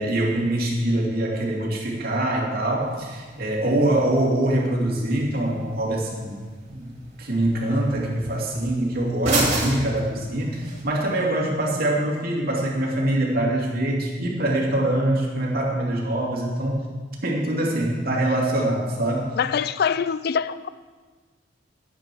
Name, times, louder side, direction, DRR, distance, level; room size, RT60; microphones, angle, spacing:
voice 1, 0.0-6.4 6.7-6.9 7.2-16.8 17.2-19.3, right 1 dB, 55° right, -2 dB, 2.7 m, -24 dB
sound 1, 2.8-10.8, right 2 dB, 35° right, 2.7 m, -32 dB
voice 2, 19.4-20.7, left 7 dB, 55° left, 15 dB, 0.4 m, -24 dB
12.0 x 9.0 x 6.2 m, 1.4 s
head